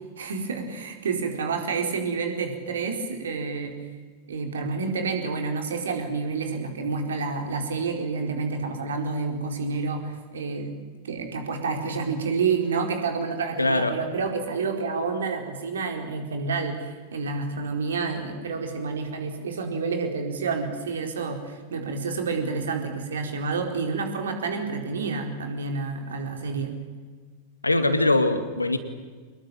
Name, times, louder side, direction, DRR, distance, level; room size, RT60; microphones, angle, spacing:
voice 1, 0.2-3.7 4.3-10.7 11.0-26.7, right 4 dB, 65° right, 4 dB, 4.5 m, -29 dB
voice 2, 13.6-13.9 27.6-28.8, left 2 dB, 85° left, 9 dB, 2.2 m, -22 dB
26.0 x 21.0 x 9.1 m, 1.5 s
figure-of-eight pair, 90°, 0 cm